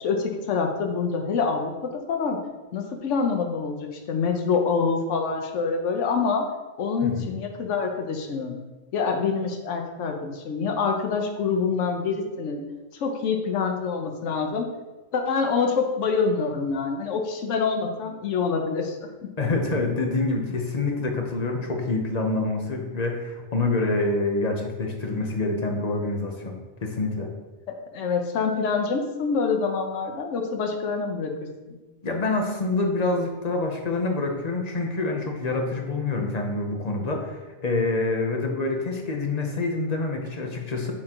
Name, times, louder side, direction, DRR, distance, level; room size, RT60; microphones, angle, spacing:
voice 1, 0.0-2.4 2.7-6.4 6.8-8.6 8.9-12.6 13.0-14.7 15.1-19.0 19.2-19.3 27.7-31.3, left 5 dB, 75° left, 3 dB, 1.1 m, -26 dB
voice 2, 19.4-26.5 26.8-27.3 32.0-40.9, left 3 dB, 35° left, 2 dB, 0.8 m, -26 dB
6.0 x 3.7 x 4.4 m, 1.1 s
omnidirectional pair, 1.3 m